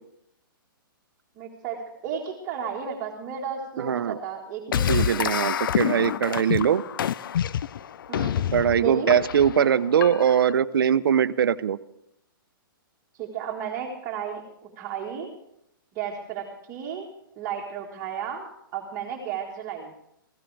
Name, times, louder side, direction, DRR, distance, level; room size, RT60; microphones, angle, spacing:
voice 1, 1.4-5.2 8.1-8.4 8.7-9.1 13.1-15.3 15.9-17.1 17.4-19.9, right 7 dB, 25° right, -2 dB, 1.6 m, -33 dB
voice 2, 3.8-4.2 4.9-6.8 8.5-11.8, right 8 dB, 80° right, 15 dB, 0.7 m, -21 dB
sound 1, 4.7-10.5, left 9 dB, 70° left, 0.4 m, -27 dB
18.0 x 15.5 x 3.4 m, 0.79 s
hypercardioid pair, 155°, 12 cm